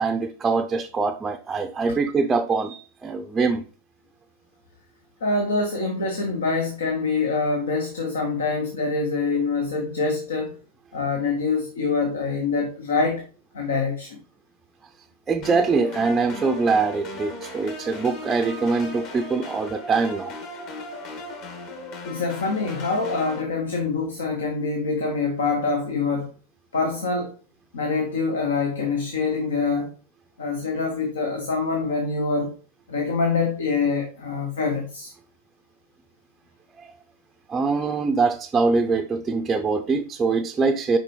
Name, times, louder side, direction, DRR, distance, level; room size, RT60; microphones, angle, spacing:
voice 1, 0.0-3.7 15.3-20.3 36.8-37.0 37.5-41.0, right 4 dB, 15° right, 0.5 m, -23 dB
voice 2, 5.2-10.6 10.9-13.2 13.5-14.2 22.0-26.3 26.7-27.3 27.7-29.9 30.4-32.5 32.9-35.1, left 4 dB, 65° left, 1.1 m, -25 dB
sound 1, 15.4-23.4, left 2 dB, 45° left, 1.8 m, -37 dB
6.6 x 5.2 x 3.2 m
figure-of-eight pair, 90°, 0 cm